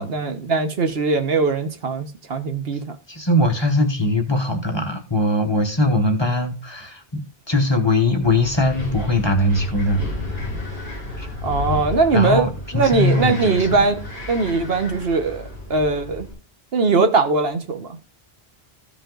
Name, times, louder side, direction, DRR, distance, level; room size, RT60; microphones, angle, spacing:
voice 1, 0.0-2.8 11.4-14.0 14.3-15.4 15.7-16.3 16.7-17.9, right 4 dB, 70° right, 1.3 m, -20 dB
voice 2, 3.1-7.2 7.5-10.0 11.2-11.3 12.1-13.9, left 1 dB, 25° left, 1.1 m, -21 dB
Wind, 8.2-16.3, left 2 dB, 20° right, 5.4 m, -32 dB
14.0 x 5.1 x 3.8 m
omnidirectional pair, 1.1 m